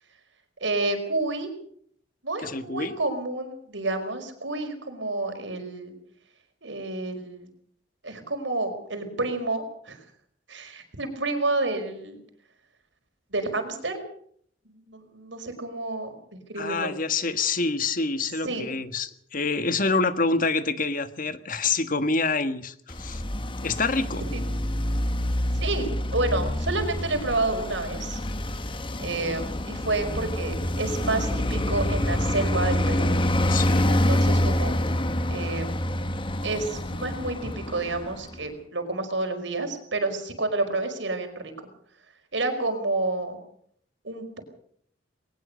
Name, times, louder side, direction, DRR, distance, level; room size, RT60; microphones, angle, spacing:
voice 1, 0.6-1.5 2.2-5.9 6.6-7.5 8.0-10.0 10.5-12.2 13.3-14.0 14.7-16.1 16.5-16.9 18.4-18.7 24.3-24.4 25.5-28.2 29.0-33.1 33.9-34.7 35.3-35.9 36.4-41.5 42.3-43.4 44.0-44.4, right 2 dB, 85° right, 6 dB, 5.0 m, -29 dB
voice 2, 2.4-3.0 16.6-23.2 23.6-24.2 33.5-33.9, left 3 dB, 50° left, 10 dB, 1.6 m, -26 dB
Traffic noise roadway noise, 22.9-38.4, left 1 dB, 30° left, 1.2 m, -27 dB
21.0 x 19.0 x 6.6 m, 0.64 s
head